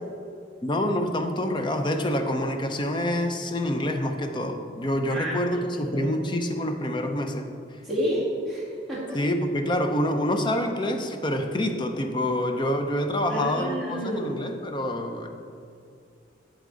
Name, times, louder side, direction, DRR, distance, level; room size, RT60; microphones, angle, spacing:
voice 1, 0.6-7.5 9.1-15.3, left 1 dB, 25° left, 5 dB, 0.5 m, -27 dB
voice 2, 7.8-9.2 13.3-14.3, equal, ahead, -9 dB, 2.0 m, -29 dB
8.2 x 7.8 x 3.9 m, 2.4 s
head